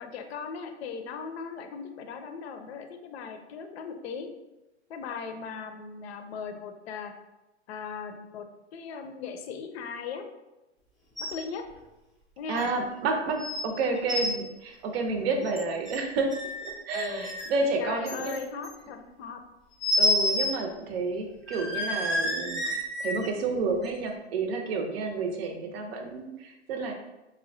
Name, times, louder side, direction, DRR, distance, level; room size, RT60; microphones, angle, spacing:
voice 1, 0.0-4.3 4.9-7.1 7.7-8.5 8.7-10.2 11.3-11.6 12.4-12.7 16.9-17.3 17.8-19.4, left 5 dB, 60° left, 6 dB, 0.6 m, -38 dB
sound 1, 11.2-11.4 11.8-11.9 12.6-12.7 13.4-13.6 13.9-14.3 15.5-16.0 16.3-17.6 18.1-18.7 19.8-20.6 20.9-21.0 21.5-23.3 23.8-23.9, left 1 dB, ahead, 0.5 m, -29 dB
voice 2, 12.5-16.3 16.6-18.3 20.0-26.9, right 3 dB, 60° right, 3 dB, 0.6 m, -30 dB
4.2 x 2.2 x 2.6 m, 1.0 s
hypercardioid pair, 125°, 35 cm